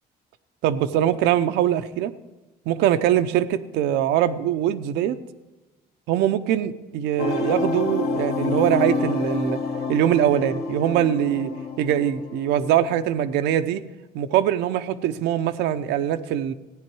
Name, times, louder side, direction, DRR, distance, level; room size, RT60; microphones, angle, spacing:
voice 1, 0.6-2.1 2.7-5.2 6.1-9.6 9.9-11.5 11.8-13.8 14.1-16.5, right 11 dB, 90° right, 11 dB, 0.7 m, -22 dB
sound 1, 7.2-13.0, left 4 dB, 70° left, 1.9 m, -28 dB
15.0 x 9.8 x 4.7 m, 1.2 s
cardioid pair, 110°, 17 cm